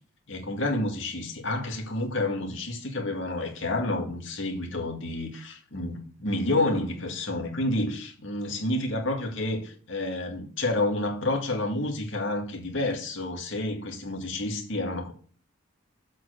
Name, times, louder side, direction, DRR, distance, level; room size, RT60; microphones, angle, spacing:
voice 1, 0.3-15.1, left 2 dB, 65° left, 2.1 m, -29 dB
7.6 x 4.6 x 6.4 m
head